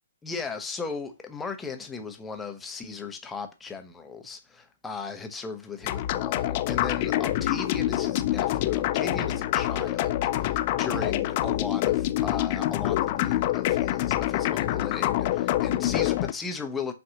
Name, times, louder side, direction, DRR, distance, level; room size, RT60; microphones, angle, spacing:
voice 1, 0.2-16.9, left 4 dB, 10° left, 0.6 m, -37 dB
sound 1, 5.8-16.3, left 14 dB, 40° left, 0.3 m, -26 dB
5.5 x 2.5 x 2.8 m
figure-of-eight pair, 125°, 0 cm